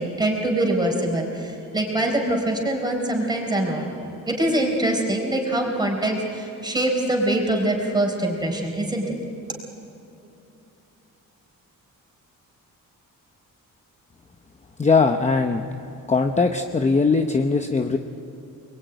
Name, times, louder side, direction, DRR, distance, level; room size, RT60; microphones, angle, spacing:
voice 1, 0.0-9.2, right 1 dB, 10° right, 1 dB, 4.3 m, -24 dB
voice 2, 14.8-15.6 16.1-18.0, left 4 dB, 20° left, 5 dB, 0.8 m, -20 dB
29.0 x 22.0 x 9.2 m, 3.0 s
wide cardioid pair, 175°, 34 cm